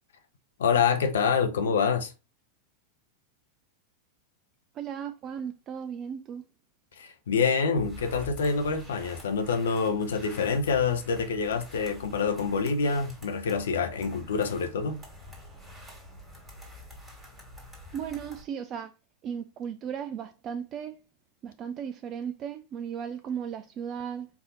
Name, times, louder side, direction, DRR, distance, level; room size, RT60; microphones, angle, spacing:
voice 1, 0.6-2.1 7.0-15.0, left 5 dB, 65° left, 0.6 m, -26 dB
voice 2, 4.7-6.4 17.9-18.9 19.2-21.0 21.4-24.3, right 8 dB, 30° right, 0.3 m, -36 dB
sound 1, 7.7-18.4, left 1 dB, 10° right, 1.8 m, -47 dB
4.7 x 2.7 x 3.7 m
figure-of-eight pair, 90°, 0 cm